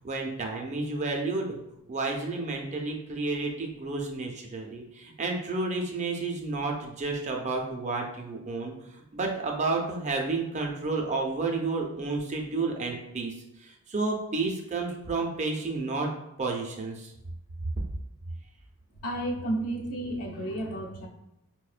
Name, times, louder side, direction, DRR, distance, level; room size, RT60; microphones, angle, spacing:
voice 1, 0.0-1.6 1.9-8.7 9.1-13.3 13.9-16.1 16.4-17.1 17.8-17.9, right 3 dB, 30° right, 2 dB, 0.4 m, -31 dB
voice 2, 19.0-21.1, right 1 dB, 85° left, 0 dB, 0.6 m, -32 dB
4.8 x 2.1 x 2.4 m, 0.88 s
head